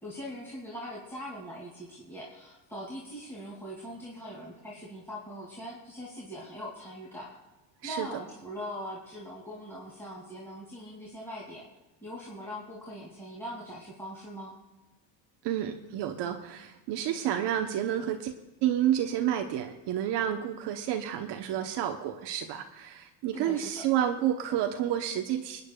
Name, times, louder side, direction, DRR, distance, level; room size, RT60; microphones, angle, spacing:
voice 1, 0.0-7.3 7.8-11.7 12.0-14.5 23.3-23.8, equal, 5° left, -6 dB, 2.7 m, -41 dB
voice 2, 15.4-18.3 18.6-25.6, right 10 dB, 65° right, 4 dB, 1.0 m, -30 dB
29.0 x 9.6 x 2.4 m, 1.1 s
supercardioid pair, 100°, 45 cm